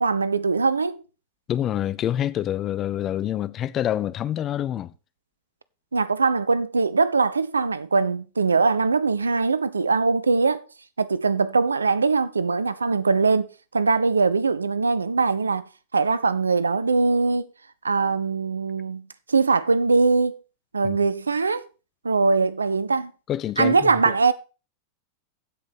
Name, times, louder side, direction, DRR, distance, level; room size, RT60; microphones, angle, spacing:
voice 1, 0.0-1.0 5.9-10.6 11.0-17.5 17.8-20.4 20.7-21.7 22.0-23.1 23.6-24.3, right 4 dB, 75° right, 0.6 m, -22 dB
voice 2, 1.5-4.9 20.8-21.0 23.3-24.1, left 11 dB, 30° left, 0.6 m, -27 dB
15.5 x 5.3 x 4.4 m
figure-of-eight pair, 90°, 0 cm